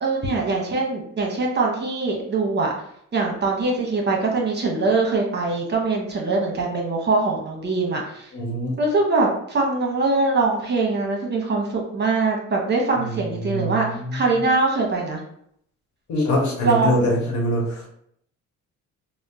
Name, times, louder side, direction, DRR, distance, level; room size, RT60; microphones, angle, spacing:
voice 1, 0.0-2.7 3.1-8.3 8.8-13.9 14.1-15.2 16.6-16.9, right 3 dB, 35° right, 0 dB, 0.8 m, -22 dB
voice 2, 8.3-8.7 13.4-13.9 16.1-17.9, equal, 70° left, 0 dB, 1.0 m, -23 dB
3.5 x 2.0 x 2.7 m, 0.69 s
cardioid pair, 90°, 30 cm